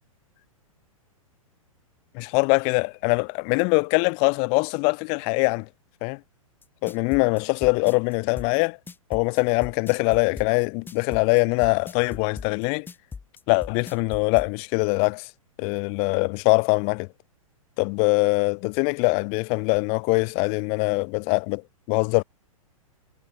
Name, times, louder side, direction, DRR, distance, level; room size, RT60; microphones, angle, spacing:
voice 1, 2.1-5.7 6.0-6.2 6.8-8.8 9.1-12.9 13.5-15.3 15.6-17.1 17.8-21.6 21.9-22.2, left 39 dB, 35° left, 1.6 m, -23 dB
sound 1, 6.6-14.5, left 5 dB, 10° left, 3.3 m, -38 dB
figure-of-eight pair, 105°, 18 cm